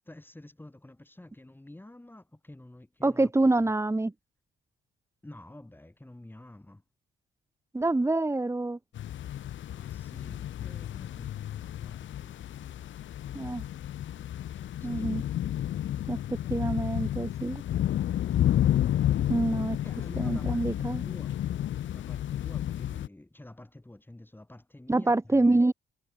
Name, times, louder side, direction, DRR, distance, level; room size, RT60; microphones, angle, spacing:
voice 1, 0.0-3.7 5.2-6.8 9.7-12.6 14.5-15.2 19.8-21.3 21.9-25.6, left 1 dB, 10° left, 7.9 m, -49 dB
voice 2, 3.0-4.1 7.7-8.8 13.3-13.6 14.8-15.2 16.1-17.6 19.3-19.8 20.2-21.0 24.9-25.7, right 2 dB, 15° right, 2.6 m, -26 dB
sound 1, 8.9-23.1, left 11 dB, 70° left, 2.6 m, -31 dB
cardioid pair, 90°, 20 cm